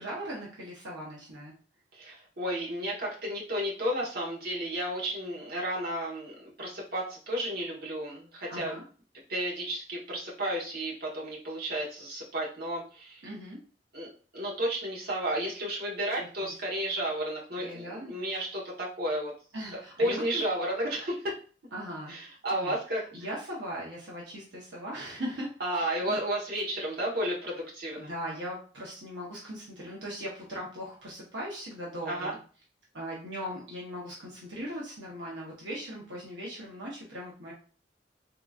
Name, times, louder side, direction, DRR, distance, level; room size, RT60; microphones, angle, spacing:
voice 1, 0.0-1.5 8.5-8.8 13.2-13.6 16.2-16.5 17.6-18.5 19.5-20.4 21.7-22.2 22.5-22.8 23.1-26.2 28.0-32.4 32.9-37.5, equal, 85° right, -4 dB, 1.0 m, -39 dB
voice 2, 1.9-8.7 9.3-13.2 13.9-19.3 20.0-21.4 22.1-23.0 25.6-28.1 32.1-32.3, right 1 dB, 60° right, -4 dB, 1.3 m, -32 dB
3.7 x 2.9 x 2.4 m, 0.39 s
head